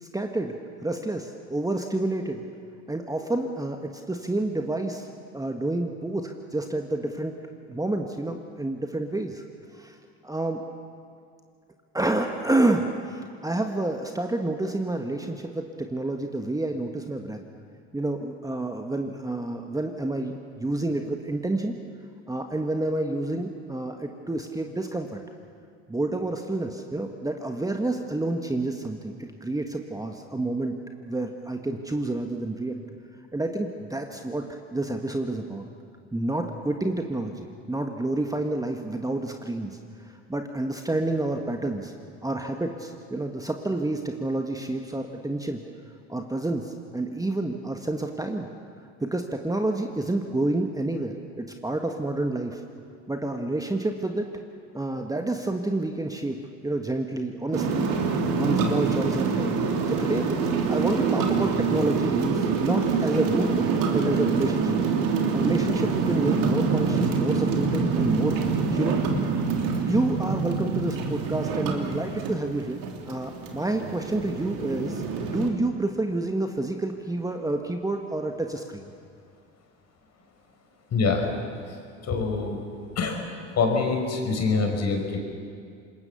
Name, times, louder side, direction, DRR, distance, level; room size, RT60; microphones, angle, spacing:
voice 1, 0.0-0.5 0.8-2.4 2.9-5.1 5.3-7.4 7.7-9.4 9.7-10.0 10.2-10.6 11.9-17.4 17.9-21.7 22.3-25.2 25.9-30.8 31.1-32.8 33.3-34.4 34.7-35.6 36.1-39.8 40.0-41.9 42.2-45.6 46.1-48.5 49.0-52.6 53.1-54.3 54.7-56.4 56.6-58.0 58.4-59.5 59.9-60.3 60.7-63.7 63.9-64.8 65.3-69.0 69.8-72.8 73.1-78.9, right 2 dB, 10° right, 4 dB, 1.7 m, -29 dB
sound 1, 57.5-75.5, right 5 dB, 60° right, 3.3 m, -26 dB
voice 2, 80.9-81.3 82.0-82.6 83.0-83.2 83.6-85.2, left 4 dB, 45° left, 3 dB, 5.5 m, -25 dB
26.0 x 21.5 x 7.1 m, 2.3 s
hypercardioid pair, 75°, 36 cm